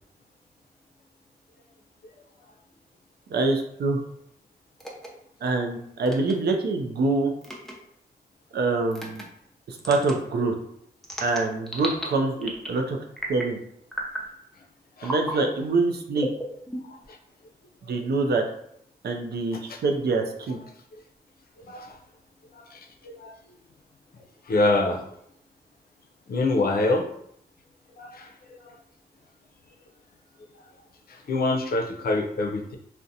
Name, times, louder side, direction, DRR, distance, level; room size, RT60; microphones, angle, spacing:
voice 1, 3.3-4.0 5.4-7.3 8.5-9.2 9.7-10.5 11.2-13.0 13.3-13.6 15.0-16.3 17.9-18.4 19.0-20.6, right 3 dB, 70° right, 4 dB, 0.4 m, -25 dB
sound 1, 4.8-5.1 6.0-6.3 7.4-7.7 8.9-9.2 9.8-10.2 11.0-12.1 12.4-12.8 13.2-13.5 13.9-14.3 15.0-15.4 16.2-17.1, equal, ahead, 0.6 m, -34 dB
voice 2, 16.8-17.2 17.9-18.0 19.5-19.8 21.6-21.9 22.5-23.3 24.4-25.1 26.3-27.1 28.0-28.8 31.1-32.8, left 2 dB, 65° left, 2 dB, 0.5 m, -27 dB
2.4 x 2.1 x 2.7 m, 0.71 s
cardioid pair, 55°, 17 cm